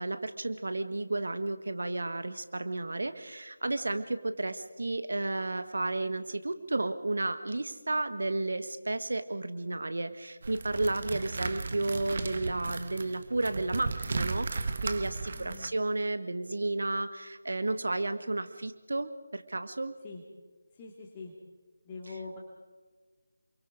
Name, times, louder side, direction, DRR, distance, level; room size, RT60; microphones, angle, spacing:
voice 1, 0.0-20.0 22.1-22.2, right 2 dB, 65° right, 10 dB, 1.5 m, -32 dB
sound 1, 10.4-15.7, right 3 dB, 45° right, 1.4 m, -35 dB
voice 2, 15.3-15.7 20.0-20.2 20.8-21.3 21.9-22.4, left 4 dB, 20° left, -3 dB, 2.4 m, -43 dB
29.0 x 23.5 x 4.9 m, 1.4 s
figure-of-eight pair, 160°, 0 cm